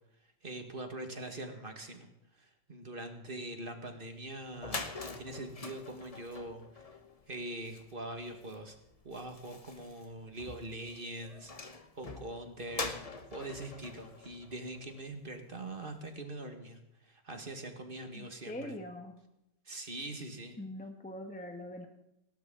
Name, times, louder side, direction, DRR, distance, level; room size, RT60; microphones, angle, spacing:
voice 1, 0.4-2.1 2.4-6.9 7.3-8.8 9.0-11.5 11.9-18.8 19.7-20.6, right 1 dB, 30° right, 5 dB, 1.9 m, -43 dB
sound 1, 4.2-4.3 4.5-15.3, left 3 dB, 25° left, 0.8 m, -45 dB
voice 2, 18.1-19.1 20.6-21.9, left 1 dB, 5° left, 4 dB, 1.3 m, -43 dB
19.0 x 18.0 x 3.9 m, 0.83 s
omnidirectional pair, 1.9 m